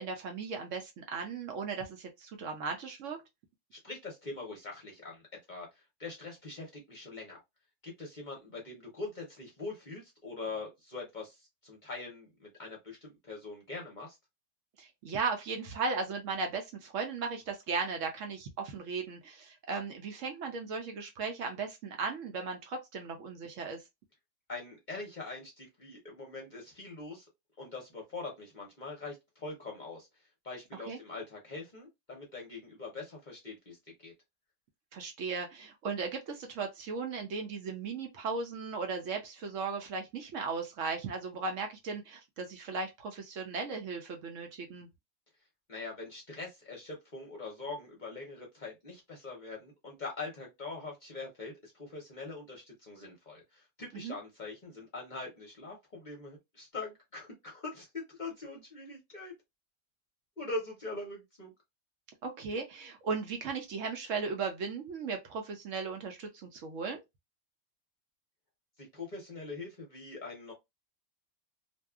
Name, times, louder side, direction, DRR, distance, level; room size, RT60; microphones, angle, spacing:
voice 1, 0.0-3.2 14.8-23.8 30.9-31.0 34.9-44.9 53.9-54.2 62.2-67.0, right 4 dB, 65° right, 0.8 m, -36 dB
voice 2, 3.7-5.2 5.5-5.7 6.0-7.4 7.8-11.4 11.6-14.2 24.5-27.2 27.6-30.1 30.4-33.8 34.0-34.1 45.7-59.3 60.4-61.5 68.9-70.5, left 3 dB, 40° left, 0.7 m, -43 dB
2.6 x 2.3 x 2.3 m
omnidirectional pair, 1.5 m